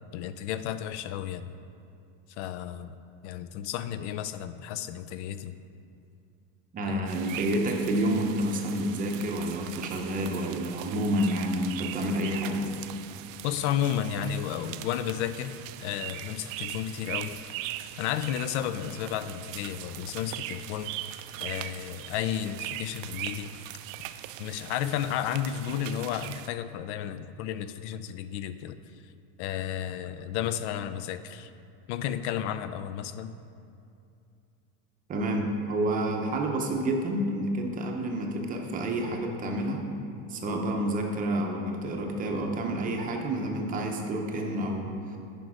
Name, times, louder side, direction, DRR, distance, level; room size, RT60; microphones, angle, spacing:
voice 1, 0.1-1.5 2.4-3.0 3.2-5.5 6.9-7.1 13.4-17.4 18.0-21.0 21.4-23.5 24.4-28.7 29.4-31.5 31.9-33.4, left 10 dB, 60° left, 12 dB, 0.5 m, -32 dB
voice 2, 6.7-12.7 35.1-39.8 40.3-45.2, right 1 dB, 20° right, 2 dB, 0.7 m, -29 dB
sound 1, 7.1-26.5, right 13 dB, 85° right, 0.5 m, -40 dB
10.0 x 5.3 x 4.8 m, 2.6 s
supercardioid pair, 165°, 38 cm